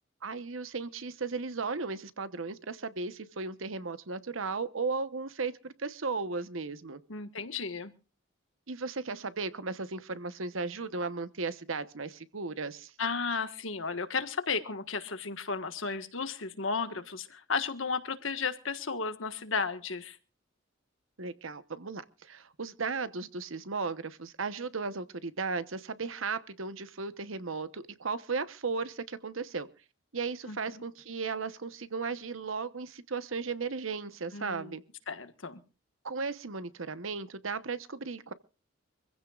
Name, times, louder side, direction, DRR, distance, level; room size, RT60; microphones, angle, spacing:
voice 1, 0.2-7.0 8.7-12.9 21.2-29.7 30.1-34.8 36.0-38.3, right 4 dB, 80° right, 1.1 m, -36 dB
voice 2, 7.1-7.9 13.0-20.2 30.5-30.6 34.3-34.8 35.1-35.6, left 4 dB, 75° left, 1.5 m, -34 dB
25.0 x 15.5 x 2.4 m
head